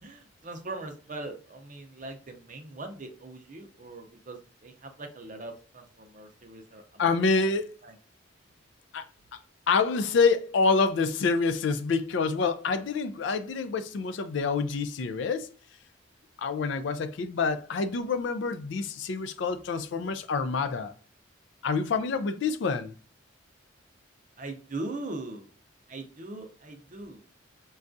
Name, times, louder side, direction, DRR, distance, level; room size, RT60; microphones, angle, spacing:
voice 1, 0.0-7.0 7.8-7.9 24.4-25.4 25.9-27.2, right 2 dB, 40° right, 0.5 m, -40 dB
voice 2, 7.0-7.7 8.9-9.0 9.3-9.4 9.7-15.5 16.4-20.9 21.6-22.9, left 4 dB, 60° left, 0.3 m, -27 dB
5.2 x 2.3 x 2.5 m
head